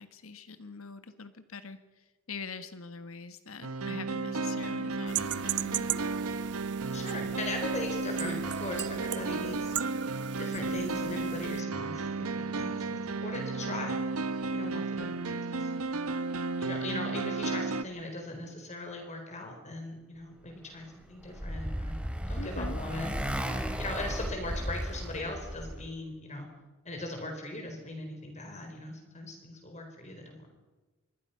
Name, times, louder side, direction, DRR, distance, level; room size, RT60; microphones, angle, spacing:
voice 1, 0.0-6.1 22.3-22.8, left 4 dB, 70° left, 10 dB, 1.5 m, -44 dB
sound 1, 3.6-17.8, right 3 dB, 85° right, 1.1 m, -33 dB
sound 2, 5.1-11.6, right 11 dB, 55° right, 0.6 m, -38 dB
voice 2, 6.9-9.8 10.4-14.0 14.5-15.7 16.6-21.9 22.3-23.2 23.8-26.5 26.8-30.5, left 2 dB, 30° left, 3 dB, 4.3 m, -39 dB
Motorcycle, 20.8-25.9, equal, 5° right, 2.7 m, -35 dB
26.0 x 23.0 x 5.7 m, 1.2 s
head